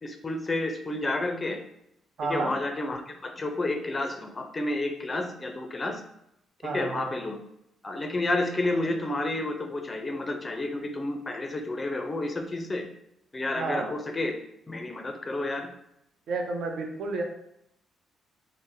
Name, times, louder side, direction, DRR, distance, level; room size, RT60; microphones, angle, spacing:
voice 1, 0.0-1.6 2.3-6.0 6.6-7.4 7.8-12.9 13.3-14.3 14.7-15.7, left 2 dB, 25° left, 5 dB, 0.4 m, -30 dB
voice 2, 2.2-2.5 6.6-7.1 13.5-13.9 16.3-17.2, right 3 dB, 65° right, 2 dB, 0.5 m, -31 dB
3.7 x 2.0 x 2.6 m, 0.79 s
cardioid pair, 90°, 0 cm